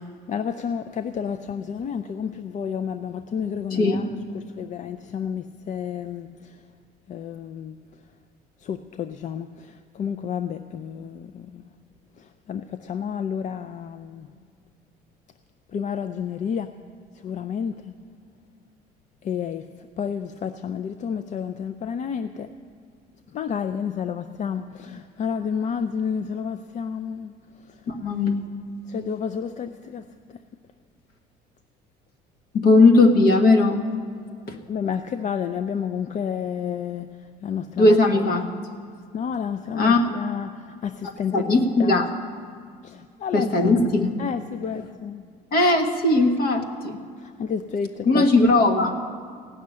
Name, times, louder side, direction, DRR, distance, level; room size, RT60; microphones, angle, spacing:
voice 1, 0.3-4.1 4.3-6.6 7.1-7.8 8.6-11.7 12.2-14.3 15.7-16.7 17.2-17.9 19.2-19.7 20.0-22.5 23.3-27.3 27.7-27.8 28.9-30.0 34.7-37.1 37.4-38.5 39.1-41.5 41.8-42.1 42.8-43.8 44.2-45.2 47.2-48.5, left 7 dB, 45° left, 10 dB, 0.5 m, -30 dB
voice 2, 3.7-4.0 27.9-28.4 32.5-33.8 34.5-34.6 37.8-38.5 39.8-40.1 41.0-42.1 43.3-44.1 45.5-47.0 48.0-48.9, left 2 dB, 60° left, 5 dB, 1.5 m, -18 dB
15.5 x 6.6 x 9.7 m, 2.1 s
cardioid pair, 110°, 17 cm